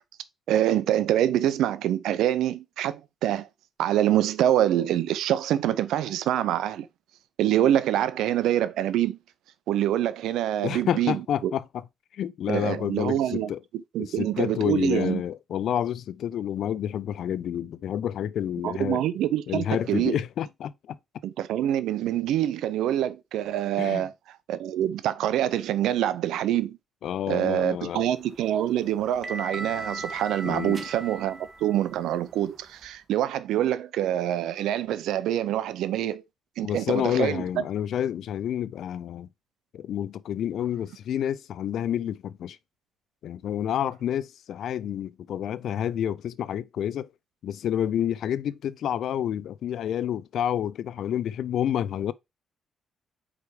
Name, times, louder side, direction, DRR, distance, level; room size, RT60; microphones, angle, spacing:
voice 1, 0.5-3.5 3.8-6.9 7.4-9.2 9.7-11.5 12.5-13.5 13.9-15.2 18.6-20.2 21.2-24.1 24.5-26.8 27.3-36.2 36.6-37.6, right 12 dB, 85° right, 0.6 m, -25 dB
voice 2, 10.6-11.6 12.1-13.6 14.0-19.0 19.5-21.0 23.8-24.0 27.0-28.0 30.4-30.8 36.6-39.3 39.7-42.6 43.2-47.1 47.4-52.1, left 10 dB, 70° left, 0.4 m, -29 dB
sound 1, 28.1-33.0, right 2 dB, 35° right, 1.2 m, -39 dB
5.0 x 4.7 x 4.7 m
cardioid pair, 90°, 0 cm